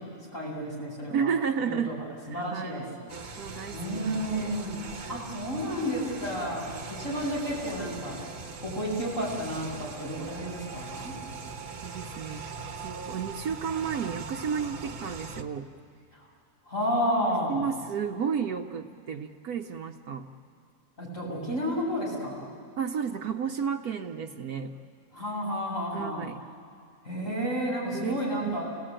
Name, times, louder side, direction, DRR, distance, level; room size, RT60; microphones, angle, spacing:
voice 1, 0.3-1.3 1.6-2.0 2.3-2.8 3.7-4.8 5.1-8.2 8.6-11.1 16.7-17.7 21.0-22.5 25.1-26.3 27.0-28.6, equal, 55° left, -5 dB, 8.0 m, -31 dB
voice 2, 1.1-2.0 2.2-4.6 5.0-5.2 11.8-12.5 12.8-15.7 17.5-20.3 22.8-24.8 25.9-26.4 27.9-28.6, right 7 dB, 70° right, 3 dB, 1.3 m, -32 dB
sound 1, 3.1-15.4, right 4 dB, 45° right, 1.3 m, -41 dB
30.0 x 19.0 x 8.9 m, 2.3 s
omnidirectional pair, 1.7 m